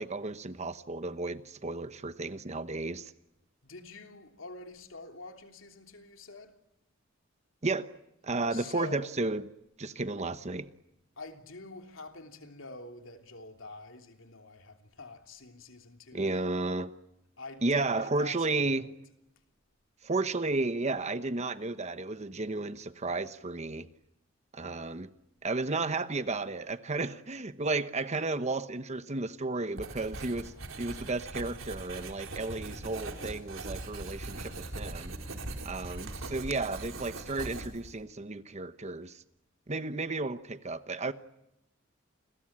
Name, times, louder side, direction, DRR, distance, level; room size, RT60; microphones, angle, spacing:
voice 1, 0.0-3.1 7.6-7.9 8.2-9.4 9.8-10.7 16.1-16.9 17.6-18.9 20.0-23.9 24.5-25.1 25.4-35.1 35.6-39.2 39.7-41.1, right 3 dB, 35° right, 1.0 m, -33 dB
voice 2, 3.6-6.6 8.5-9.1 11.2-16.6 17.4-19.1 36.4-36.9, left 3 dB, 80° left, 3.2 m, -47 dB
Writing, 29.8-38.0, right 2 dB, 90° right, 4.1 m, -41 dB
29.0 x 21.5 x 8.7 m
head